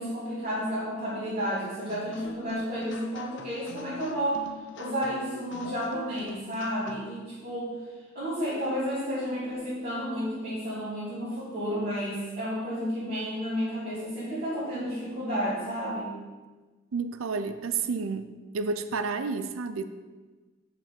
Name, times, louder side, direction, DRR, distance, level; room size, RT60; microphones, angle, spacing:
voice 1, 0.0-4.4 4.8-7.7 8.1-16.1, equal, 45° right, -11 dB, 2.6 m, -31 dB
sound 1, 1.9-7.2, left 3 dB, 60° left, 0.7 m, -44 dB
voice 2, 16.9-19.8, right 4 dB, 90° right, 11 dB, 0.5 m, -31 dB
5.7 x 5.6 x 6.8 m, 1.3 s
head